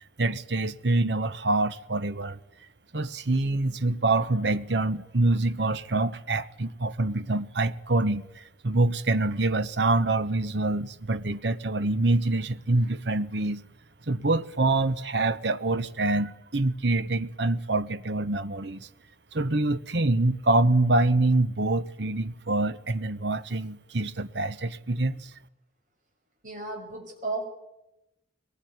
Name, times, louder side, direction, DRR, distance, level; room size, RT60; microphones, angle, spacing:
voice 1, 0.2-2.4 2.9-13.6 14.1-18.9 19.3-25.3, right 2 dB, 65° right, 1.1 m, -25 dB
voice 2, 26.4-27.4, right 2 dB, 45° right, 6.0 m, -34 dB
22.0 x 19.5 x 9.5 m
head